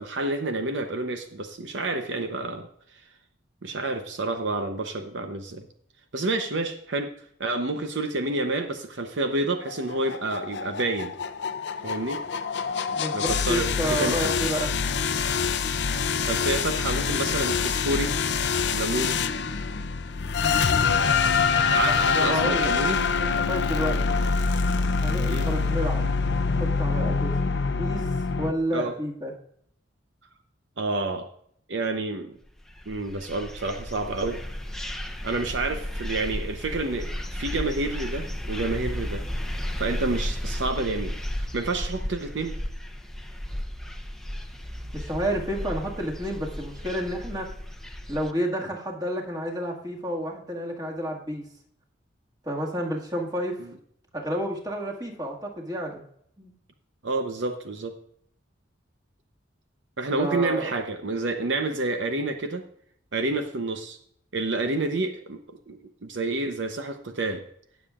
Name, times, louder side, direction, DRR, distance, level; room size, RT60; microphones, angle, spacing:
voice 1, 0.0-3.0 3.6-5.6 6.1-7.1 7.4-11.1 11.8-12.2 13.1-14.3 16.2-18.2 18.7-19.2 21.7-23.0 25.3-25.5 28.7-28.9 30.8-31.3 31.7-32.4 32.9-34.4 35.2-39.2 39.8-41.2 41.5-42.5 53.6-53.7 57.0-57.9 60.0-62.6 63.1-64.0 64.3-65.4 65.7-67.4, right 2 dB, 65° right, 6 dB, 0.8 m, -29 dB
sound 1, 9.7-28.5, left 5 dB, 60° left, 0.6 m, -25 dB
voice 2, 12.9-14.7 21.9-22.7 23.2-24.2 25.0-26.0 26.6-27.4 27.8-28.1 28.4-29.3 44.9-47.5 48.1-51.4 52.4-53.6 54.1-56.0 56.4-56.5 60.2-60.8, equal, 20° right, -1 dB, 1.9 m, -30 dB
sound 2, 32.6-48.3, left 1 dB, ahead, 0.8 m, -34 dB
18.5 x 7.2 x 2.4 m, 0.68 s
head